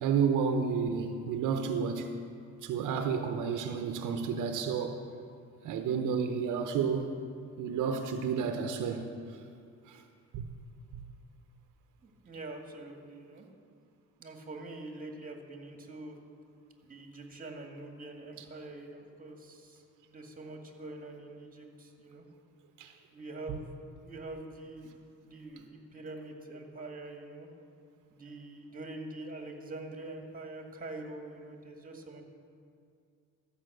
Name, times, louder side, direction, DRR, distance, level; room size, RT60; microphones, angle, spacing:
voice 1, 0.0-2.1 2.6-5.0 5.6-7.1 7.6-9.1 9.9-10.0 10.3-10.4 10.9-11.0 18.4-18.5 22.8-22.9, right 6 dB, 85° right, 0.8 m, -31 dB
voice 2, 12.0-13.5 14.2-16.2 16.8-19.8 20.1-22.2 23.1-23.8 24.0-27.5 28.1-32.2, right 2 dB, 30° right, 1.8 m, -45 dB
13.5 x 5.8 x 7.7 m
cardioid pair, 90°, 30 cm